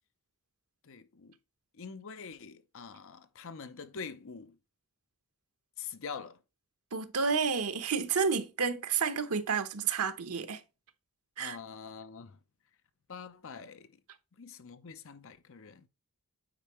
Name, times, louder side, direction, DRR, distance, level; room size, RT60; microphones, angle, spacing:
voice 1, 0.8-1.3 1.8-4.6 5.8-6.4 11.4-12.4 13.1-13.9 14.4-15.8, left 5 dB, 65° left, 0.7 m, -45 dB
voice 2, 6.9-10.6 11.4-11.6, right 5 dB, 90° right, 0.9 m, -30 dB
8.8 x 4.6 x 3.1 m
head